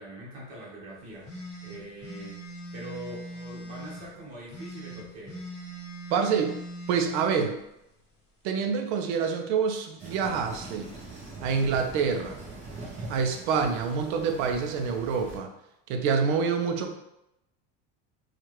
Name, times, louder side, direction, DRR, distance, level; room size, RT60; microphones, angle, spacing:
voice 1, 0.0-1.3 1.6-2.4 2.7-5.4, right 1 dB, 45° right, -5 dB, 1.4 m, -43 dB
sound 1, 1.2-4.0 4.5-7.3, right 1 dB, 20° left, 1.1 m, -41 dB
voice 2, 6.1-6.6 6.9-7.6 8.4-10.9 11.4-12.4 13.1-15.5 15.9-16.9, right 6 dB, 75° right, 5 dB, 0.6 m, -27 dB
sound 2, 10.0-15.4, right 2 dB, 20° right, 0.7 m, -42 dB
4.4 x 2.4 x 3.1 m, 0.84 s
cardioid pair, 175°, 34 cm